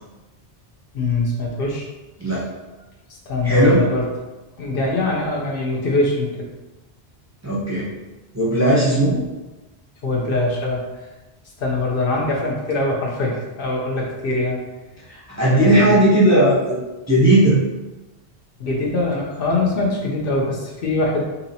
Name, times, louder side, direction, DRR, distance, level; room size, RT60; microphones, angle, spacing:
voice 1, 0.9-1.9 3.3-4.0 4.6-6.5 9.0-9.3 10.0-10.8 11.6-14.6 15.5-16.0 18.6-21.2, left 2 dB, 60° left, -2 dB, 0.8 m, -22 dB
voice 2, 3.4-3.8 7.4-7.9 8.3-9.1 15.1-16.8 17.1-17.6, right 1 dB, 20° right, -7 dB, 0.6 m, -16 dB
2.8 x 2.8 x 4.0 m, 1.1 s
omnidirectional pair, 1.1 m